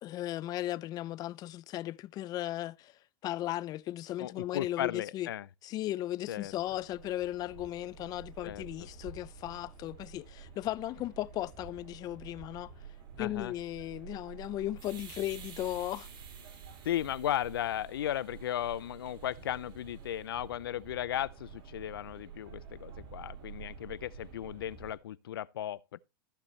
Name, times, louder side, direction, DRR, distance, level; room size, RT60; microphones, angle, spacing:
voice 1, 0.0-2.9 3.2-5.3 5.6-12.7 13.2-16.1, left 14 dB, 35° left, 0.5 m, -36 dB
voice 2, 4.2-5.5 6.3-6.5 8.4-8.6 13.2-13.5 16.8-26.0, left 11 dB, 90° left, 0.5 m, -36 dB
sound 1, 6.3-24.9, right 6 dB, 40° right, 5.3 m, -49 dB
14.0 x 6.9 x 3.2 m
hypercardioid pair, 125°, 12 cm